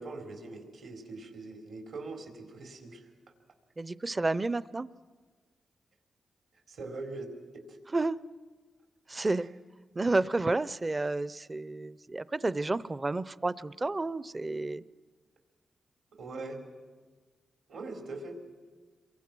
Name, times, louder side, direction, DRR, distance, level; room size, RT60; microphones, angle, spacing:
voice 1, 0.0-3.1 6.7-7.3 7.5-7.8 9.4-9.5 16.1-16.6 17.7-18.4, right 3 dB, 80° right, 3 dB, 4.1 m, -42 dB
voice 2, 3.8-4.9 7.9-8.2 9.1-9.5 10.0-14.8, right 2 dB, 30° right, 17 dB, 0.6 m, -30 dB
28.0 x 23.0 x 6.2 m, 1.5 s
cardioid pair, 75°, 0 cm